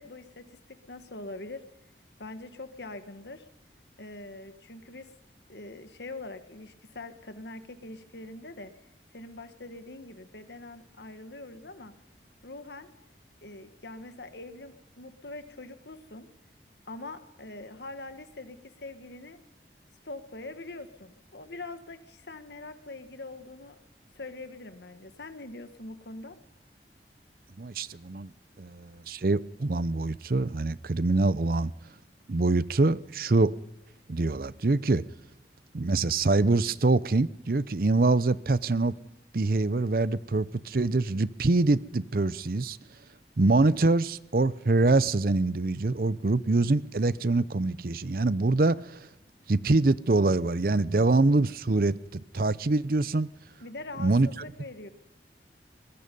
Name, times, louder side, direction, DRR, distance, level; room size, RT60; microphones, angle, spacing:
voice 1, 0.0-1.6 2.2-3.4 4.0-5.1 5.5-8.7 9.1-11.9 12.4-12.9 13.4-16.3 16.9-19.4 20.0-23.8 24.1-26.4 53.6-54.9, left 2 dB, 75° left, 1.6 m, -43 dB
voice 2, 27.6-28.3 28.6-31.7 32.3-33.5 34.1-35.0 35.7-39.0 39.3-42.8 43.4-49.1 49.5-53.3 54.0-54.3, right 2 dB, 55° right, 0.6 m, -25 dB
23.0 x 21.0 x 5.4 m
head